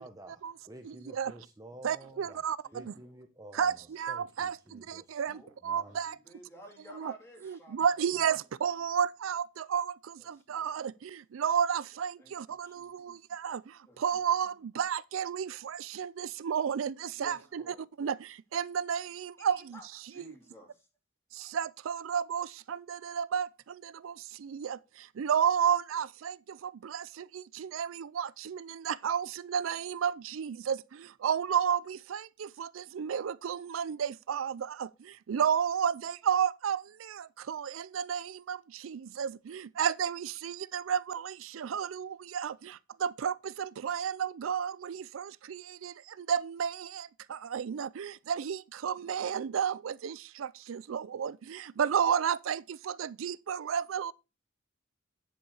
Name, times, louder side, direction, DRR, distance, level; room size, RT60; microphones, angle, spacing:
voice 1, 0.0-2.4 2.7-3.8 4.1-5.2 5.6-6.0, right 1 dB, 20° right, 0.8 m, -50 dB
voice 2, 0.8-1.3 1.8-2.9 3.5-6.2 6.9-7.1 7.4-19.8 20.2-20.4 21.3-54.1, right 8 dB, 90° right, 0.4 m, -32 dB
voice 3, 2.6-3.3 5.3-7.8 8.1-8.2 10.2-10.7 12.2-13.3 13.9-14.3 17.1-17.9 19.4-20.9, equal, 15° left, 3.4 m, -54 dB
10.5 x 5.5 x 4.8 m
head